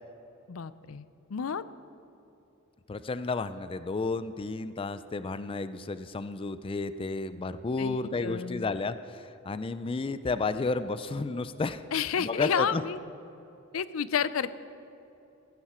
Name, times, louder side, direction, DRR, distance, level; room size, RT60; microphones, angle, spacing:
voice 1, 0.5-1.6 7.8-8.7 11.9-13.0 13.7-14.5, left 7 dB, 80° left, 16 dB, 0.5 m, -31 dB
voice 2, 2.9-11.8 12.2-12.8, left 3 dB, 25° left, 13 dB, 0.4 m, -32 dB
16.0 x 15.5 x 4.3 m, 2.9 s
head